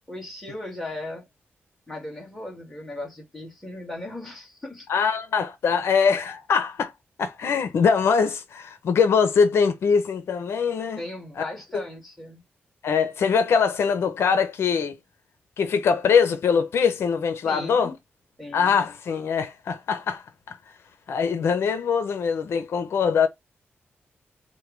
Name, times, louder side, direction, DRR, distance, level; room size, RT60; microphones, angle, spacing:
voice 1, 0.1-1.3 1.9-4.9 11.0-12.4 17.4-18.0 18.4-18.8, left 1 dB, ahead, 1.8 m, -37 dB
voice 2, 4.9-6.9 7.2-11.0 11.4-11.5 12.8-15.0 15.6-17.9 18.5-20.6 21.1-23.3, left 6 dB, 75° left, 0.7 m, -22 dB
4.6 x 2.2 x 3.2 m
wide cardioid pair, 135°, 4 cm